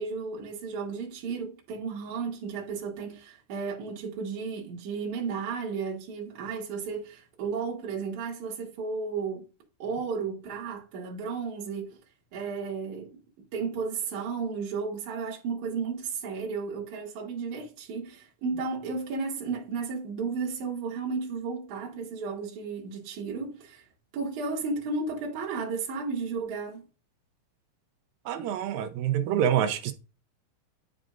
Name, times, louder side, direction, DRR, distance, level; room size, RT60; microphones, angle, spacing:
voice 1, 0.0-9.5 9.8-12.0 12.3-13.1 13.5-23.8 24.1-26.8, right 5 dB, 55° right, 2.8 m, -33 dB
voice 2, 28.3-29.9, right 10 dB, 75° right, 2.3 m, -26 dB
10.5 x 4.9 x 2.5 m
omnidirectional pair, 4.4 m